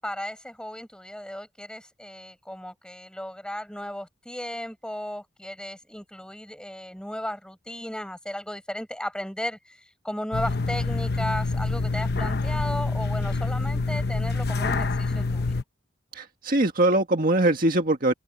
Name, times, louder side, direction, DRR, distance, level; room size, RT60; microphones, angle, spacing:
voice 1, 0.0-15.6, left 1 dB, 5° left, 6.9 m, -35 dB
sound 1, 10.3-15.6, left 3 dB, 55° left, 1.0 m, -26 dB
voice 2, 16.1-18.1, right 1 dB, 45° right, 1.9 m, -22 dB
open air
head